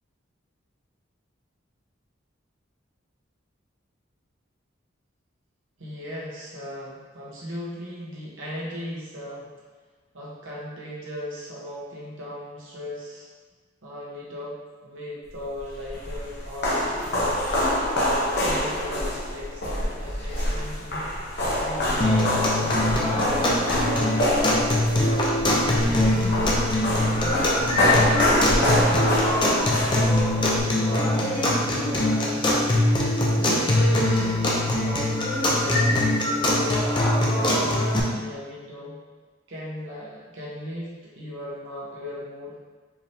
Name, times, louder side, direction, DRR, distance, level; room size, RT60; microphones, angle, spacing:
voice 1, 5.8-9.5 10.1-13.3 13.8-17.4 18.0-21.1 21.4-24.3 24.8-27.8 28.2-29.8 30.2-32.6 33.3-37.7 38.1-39.0 39.5-42.6, left 1 dB, 80° right, -6 dB, 1.3 m, -37 dB
sound 1, 15.6-30.6, left 1 dB, 60° left, 1.0 m, -26 dB
sound 2, 22.0-38.0, left 1 dB, 25° left, 0.6 m, -22 dB
4.8 x 3.4 x 2.8 m, 1.4 s
head